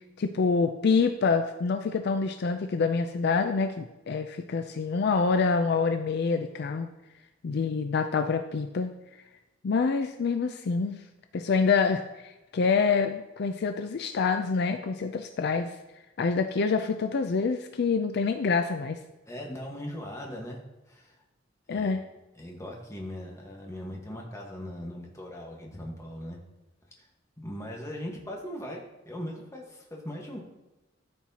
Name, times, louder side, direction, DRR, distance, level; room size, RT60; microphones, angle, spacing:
voice 1, 0.2-6.9 7.4-8.9 9.6-11.0 11.3-15.7 16.2-19.0 21.7-22.0, left 5 dB, 60° left, 7 dB, 0.4 m, -26 dB
voice 2, 19.3-21.2 21.7-22.0 22.3-26.4 27.0-27.1 27.4-30.4, equal, 15° left, -1 dB, 1.4 m, -39 dB
13.0 x 4.5 x 2.8 m, 1.0 s
head